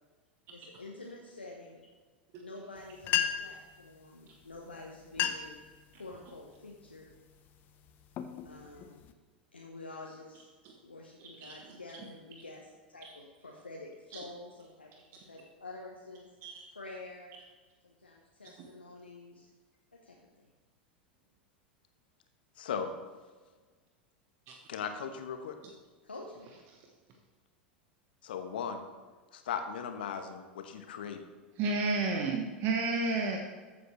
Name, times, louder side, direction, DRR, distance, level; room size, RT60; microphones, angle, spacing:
voice 1, 0.5-1.8 2.4-5.6 6.0-7.1 8.4-9.0 9.5-10.5 10.8-15.0 15.3-16.3 16.7-17.4 17.8-19.5 19.9-20.5 26.0-26.5, left 2 dB, 85° left, -1 dB, 1.1 m, -48 dB
sound 1, 2.8-2.9 3.0-3.6 4.5-4.7 5.0-5.6 6.1-6.5 7.1-7.3 7.9-9.1, left 10 dB, 35° left, 0.8 m, -33 dB
voice 2, 22.6-22.9 24.7-25.6 28.2-28.8 29.3-31.2, left 7 dB, 65° left, 7 dB, 1.1 m, -37 dB
voice 3, 31.6-33.4, right 3 dB, 40° right, 2 dB, 1.2 m, -31 dB
14.0 x 7.5 x 3.2 m, 1.4 s
figure-of-eight pair, 85°, 6 cm